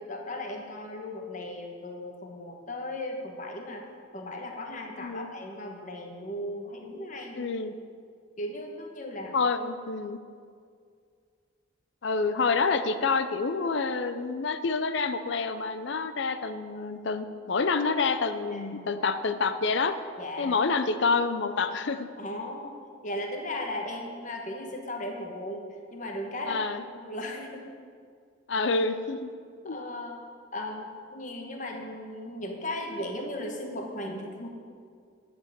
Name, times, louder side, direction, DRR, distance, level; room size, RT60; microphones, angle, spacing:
voice 1, 0.0-3.8 4.1-7.5 8.4-9.3 18.5-18.9 20.2-20.5 22.2-22.8 23.0-25.6 25.9-26.6 26.9-27.7 29.6-30.2 30.5-34.5, left 1 dB, 40° left, 2 dB, 1.2 m, -36 dB
voice 2, 7.3-7.7 9.3-10.2 12.0-20.0 20.4-22.1 26.5-26.8 28.5-29.3 29.6-29.8, left 4 dB, 65° left, 11 dB, 0.5 m, -28 dB
10.0 x 6.1 x 6.8 m, 2.2 s
head